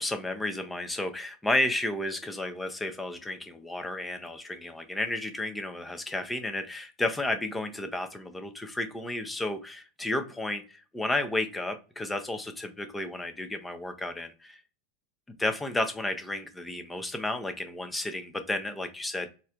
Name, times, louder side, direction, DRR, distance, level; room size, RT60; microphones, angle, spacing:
voice 1, 0.0-14.6 15.3-19.3, left 1 dB, 10° left, 7 dB, 0.6 m, -32 dB
4.2 x 2.0 x 2.4 m, 0.34 s
hypercardioid pair, 105°, 0 cm